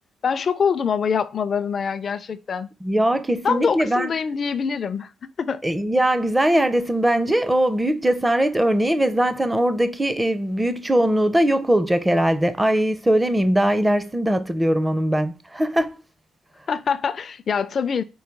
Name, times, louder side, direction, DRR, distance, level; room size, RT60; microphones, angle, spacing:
voice 1, 0.2-2.7 3.4-5.6 16.7-18.0, left 6 dB, 45° left, 0.4 m, -24 dB
voice 2, 2.8-4.1 5.6-16.0, right 1 dB, 10° right, 0.5 m, -20 dB
4.7 x 2.3 x 4.4 m
cardioid pair, 90°, 0 cm